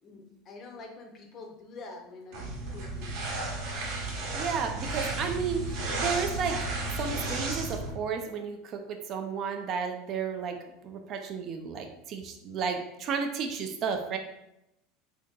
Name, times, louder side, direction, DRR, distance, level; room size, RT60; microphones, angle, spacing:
voice 1, 0.0-3.2, left 3 dB, 30° left, 1 dB, 0.6 m, -46 dB
sound 1, 2.3-7.9, right 2 dB, 55° right, 0.8 m, -33 dB
voice 2, 4.3-6.6 7.0-10.6 10.8-14.2, right 6 dB, 35° right, 5 dB, 0.3 m, -32 dB
2.7 x 2.6 x 3.6 m, 0.87 s
supercardioid pair, 165°, 0 cm